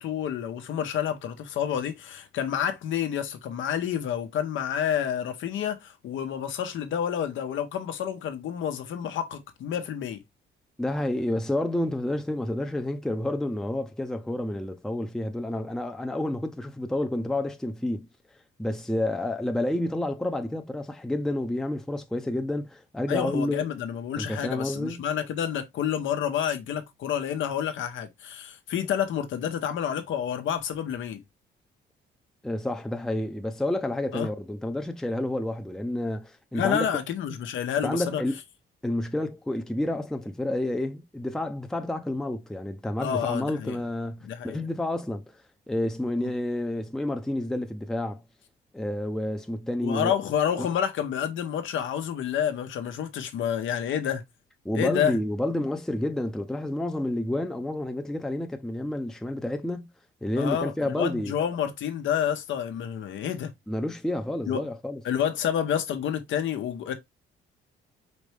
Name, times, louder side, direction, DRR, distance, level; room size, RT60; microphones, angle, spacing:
voice 1, 0.0-10.2 23.1-31.2 34.1-34.3 36.5-38.2 43.0-43.8 44.2-44.6 46.2-46.3 49.8-54.2 54.7-55.2 60.4-63.5 64.5-64.6 65.0-66.9, left 9 dB, 75° left, 1.0 m, -29 dB
voice 2, 10.8-18.1 18.6-23.7 24.2-25.0 32.4-36.9 37.8-38.4 38.8-45.2 45.7-48.2 48.7-50.1 50.6-50.7 54.6-59.9 60.2-61.3 63.7-65.0, left 1 dB, 5° left, 0.6 m, -29 dB
5.2 x 3.1 x 3.3 m
cardioid pair, 90°, 20 cm